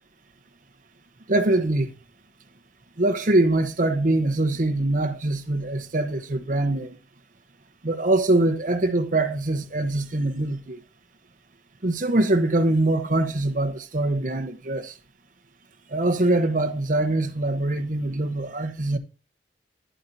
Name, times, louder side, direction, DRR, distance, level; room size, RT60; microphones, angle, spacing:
voice 1, 1.3-1.9 3.0-7.0 7.8-10.8 11.8-14.9 15.9-19.0, right 2 dB, 45° right, 1.0 m, -23 dB
10.5 x 8.6 x 2.6 m
head